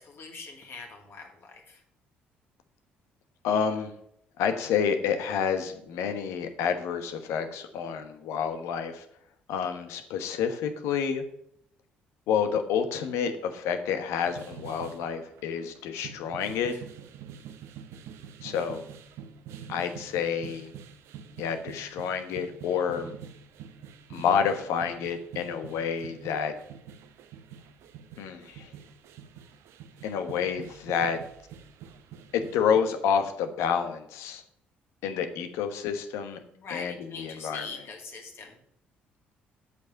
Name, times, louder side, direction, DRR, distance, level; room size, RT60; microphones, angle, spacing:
voice 1, 0.0-1.8 16.7-16.8 36.5-38.6, left 4 dB, 50° left, 2 dB, 2.6 m, -43 dB
voice 2, 3.4-3.9 4.4-9.0 9.5-11.2 12.3-16.7 18.4-18.8 19.7-20.7 21.4-23.1 24.1-26.5 28.2-28.7 30.0-31.2 32.3-34.4 35.0-36.4 36.7-37.6, left 7 dB, 70° left, 8 dB, 1.1 m, -29 dB
sound 1, 14.2-32.8, right 8 dB, 65° right, 0.8 m, -46 dB
8.2 x 5.3 x 6.8 m, 0.72 s
hypercardioid pair, 50°, 5 cm